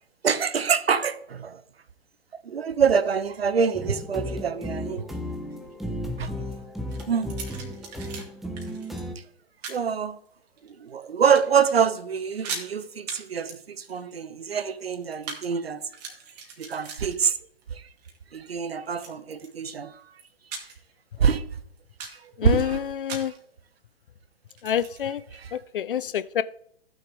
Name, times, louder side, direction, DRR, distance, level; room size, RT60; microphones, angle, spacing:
voice 1, 0.2-1.6 2.3-5.1 6.2-6.3 7.1-7.4 9.7-10.2 10.6-15.8 16.6-17.4 17.7-17.8 18.3-20.0 21.2-21.4 22.2-22.9 25.3-25.6, right 6 dB, 70° right, 0.9 m, -25 dB
sound 1, 3.7-9.2, equal, ahead, 0.5 m, -34 dB
sound 2, 6.9-8.2 8.6-9.0 9.6-9.9 10.5-11.0 11.3-11.7 12.0-12.1 12.3-12.7 13.1-13.2 13.5-15.5 15.8-17.6 18.0-18.4 19.0-19.7 20.2-20.9 21.3-21.4 21.8-22.3 23.1-23.4 24.5-25.0, right 5 dB, 40° right, 2.3 m, -39 dB
voice 2, 22.4-23.3 24.6-25.2 25.5-26.4, left 9 dB, 55° left, 0.6 m, -27 dB
14.5 x 6.5 x 3.5 m
figure-of-eight pair, 120°, 31 cm